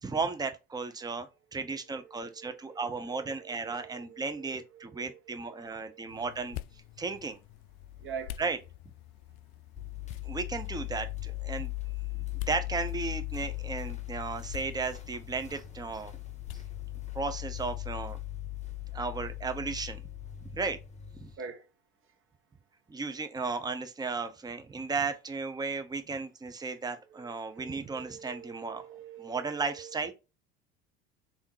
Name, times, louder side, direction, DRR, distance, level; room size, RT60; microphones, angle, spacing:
voice 1, 0.0-6.6 7.0-7.4 8.4-8.6 10.2-11.7 12.1-16.1 17.1-18.2 18.9-20.0 20.4-20.8 21.2-21.3 22.9-28.8 29.2-30.1, right 4 dB, 10° right, 0.7 m, -35 dB
voice 2, 2.0-6.2 8.0-8.5 21.4-21.6 27.1-30.1, right 7 dB, 40° right, 1.4 m, -47 dB
sound 1, 6.1-17.2, left 12 dB, 60° left, 0.4 m, -48 dB
sound 2, 9.8-21.3, left 15 dB, 20° left, 1.0 m, -39 dB
3.5 x 2.8 x 4.6 m
hypercardioid pair, 75°, 32 cm